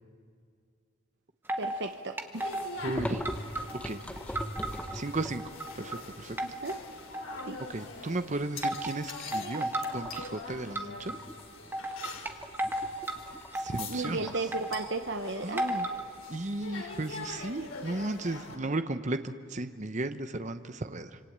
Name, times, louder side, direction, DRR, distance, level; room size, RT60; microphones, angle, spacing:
sound 1, 1.5-1.9 2.2-2.9 3.3-4.9 5.3-6.0 6.4-7.6 8.6-8.9 9.3-10.3 10.8-11.1 11.7-13.2 13.5-14.9 15.6-16.0, right 1 dB, 10° right, 1.6 m, -34 dB
voice 1, 1.6-2.5 6.4-6.8 7.5-7.6 13.9-15.9, right 3 dB, 60° right, 6 dB, 1.1 m, -35 dB
sound 2, 2.3-18.6, left 4 dB, 85° left, 3.2 m, -45 dB
sound 3, 2.8-5.7 6.2-6.3 6.6-7.8 8.2-8.5 8.8-9.4 9.8-18.6, equal, 5° left, 1.2 m, -41 dB
voice 2, 2.8-3.3 3.7-4.0 4.9-6.4 7.7-11.1 13.5-14.3 15.4-15.9 16.3-21.2, right 2 dB, 35° right, 9 dB, 0.9 m, -35 dB
26.5 x 25.0 x 8.7 m, 2.3 s
head